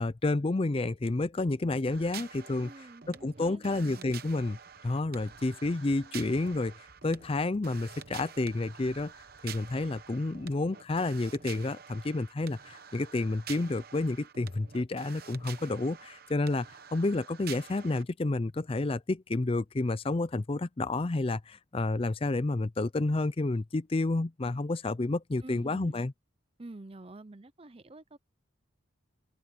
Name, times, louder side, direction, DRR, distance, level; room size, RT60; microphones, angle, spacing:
voice 1, 0.0-2.7 3.1-4.6 4.8-6.7 7.0-9.1 9.4-16.7 16.9-26.1, left 2 dB, 25° left, 0.4 m, -30 dB
sound 1, 1.9-18.0, right 8 dB, 45° right, 0.9 m, -48 dB
voice 2, 2.6-4.1 25.4-26.0 26.6-28.2, right 2 dB, 25° right, 0.7 m, -48 dB
Computer keyboard, 4.6-10.6, equal, 65° left, 4.1 m, -59 dB
open air
head